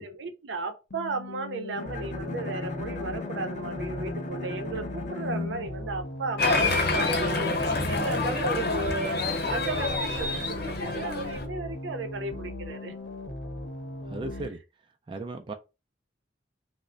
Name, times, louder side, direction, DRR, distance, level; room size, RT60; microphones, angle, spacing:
voice 1, 0.0-12.9, right 3 dB, 80° right, 0.6 m, -35 dB
sound 1, 0.9-14.5, left 1 dB, 85° left, 0.8 m, -39 dB
Bowed string instrument, 1.8-6.8, left 3 dB, 45° left, 0.5 m, -37 dB
Applause, 6.4-11.4, left 2 dB, 60° left, 0.9 m, -27 dB
voice 2, 14.1-14.6 15.1-15.5, right 2 dB, 25° right, 0.3 m, -36 dB
3.2 x 2.1 x 3.7 m
head